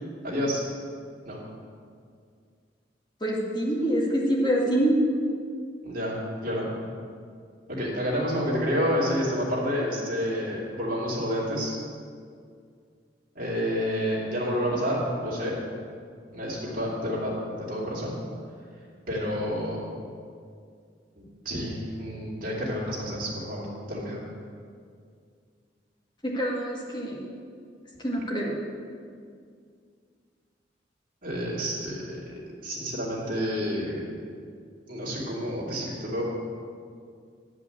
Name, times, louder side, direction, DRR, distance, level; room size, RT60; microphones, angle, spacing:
voice 1, 0.2-0.6 1.2-1.4 5.8-6.2 6.4-6.7 7.7-11.8 13.3-15.5 16.3-17.3 17.6-18.1 19.1-19.8 21.2-24.2 31.2-32.3 32.6-34.0 34.9-36.2, equal, 50° right, -5 dB, 2.7 m, -29 dB
voice 2, 3.2-5.0 26.2-27.2 28.0-28.6, right 1 dB, 25° left, -4 dB, 1.9 m, -25 dB
9.5 x 5.6 x 7.8 m, 2.2 s
head